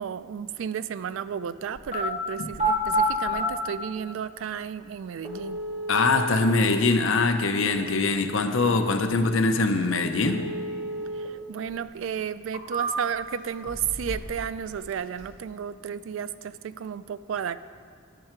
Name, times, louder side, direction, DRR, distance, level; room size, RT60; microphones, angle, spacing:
voice 1, 0.0-5.6 11.1-17.6, right 8 dB, 75° right, 14 dB, 0.3 m, -33 dB
sound 1, 1.8-2.1 2.5-3.5 4.4-4.5 5.2-6.3 10.2-11.3 11.7-11.8 12.4-13.2 13.7-14.4 14.7-15.3, right 1 dB, 35° right, 1.7 m, -29 dB
voice 2, 5.9-10.4, left 3 dB, 75° left, 7 dB, 0.6 m, -23 dB
10.5 x 6.6 x 4.5 m, 2.1 s
head